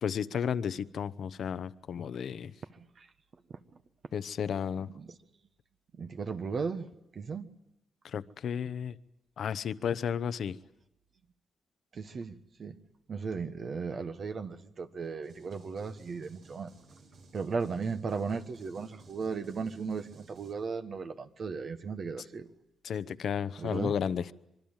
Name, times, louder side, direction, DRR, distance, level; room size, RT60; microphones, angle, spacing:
voice 1, 0.0-2.5 4.1-4.9 8.0-9.0 9.4-10.6 22.8-24.3, left 8 dB, 65° left, 0.9 m, -33 dB
voice 2, 2.7-3.1 4.8-5.1 5.9-6.9 7.1-7.5 11.9-12.8 13.1-16.7 17.3-22.5 23.6-23.9, right 5 dB, 50° right, 1.4 m, -36 dB
sound 1, 15.2-20.5, right 3 dB, 75° right, 6.2 m, -57 dB
25.5 x 23.0 x 9.0 m
cardioid pair, 105°, 0 cm